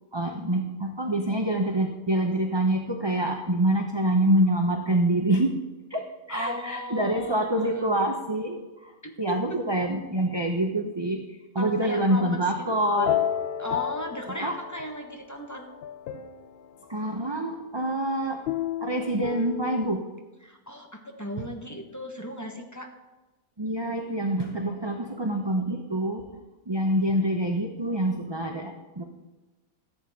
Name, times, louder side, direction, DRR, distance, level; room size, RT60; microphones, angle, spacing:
voice 1, 0.1-5.6 5.9-8.6 9.2-11.2 11.5-13.2 14.4-14.6 16.9-18.4 18.8-20.0 21.4-21.5 23.6-26.2 26.7-29.0, right 1 dB, 25° right, 4 dB, 0.6 m, -26 dB
voice 2, 6.3-7.9 9.0-9.6 11.6-12.8 13.6-15.7 20.4-22.9, left 1 dB, 15° left, 2 dB, 1.1 m, -36 dB
sound 1, 13.0-15.1 15.6-16.7 18.5-19.9, left 10 dB, 70° left, 0.5 m, -31 dB
14.0 x 8.2 x 3.6 m, 1.1 s
omnidirectional pair, 1.5 m